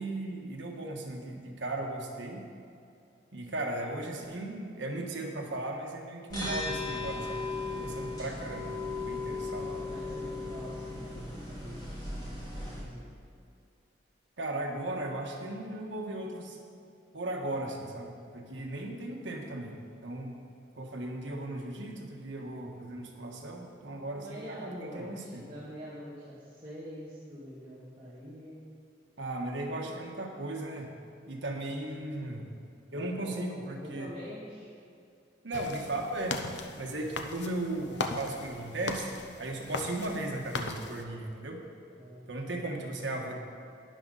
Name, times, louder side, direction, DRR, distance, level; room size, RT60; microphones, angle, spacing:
voice 1, 0.0-2.4 3.3-8.7 9.0-9.7 14.4-16.6 17.1-20.4 20.7-25.4 29.2-30.9 31.3-32.5 32.9-34.1 35.4-36.4 36.8-39.1 39.4-41.6 42.3-43.4, right 2 dB, 80° right, 1 dB, 1.5 m, -36 dB
sound 1, 6.3-12.8, left 3 dB, 20° left, 3.0 m, -37 dB
voice 2, 9.3-13.0 24.1-28.5 29.7-29.9 32.9-34.7 41.9-42.8, equal, 25° right, -12 dB, 2.3 m, -45 dB
sound 2, 35.5-41.0, left 3 dB, 70° left, 0.8 m, -38 dB
12.0 x 10.5 x 4.1 m, 2.5 s
head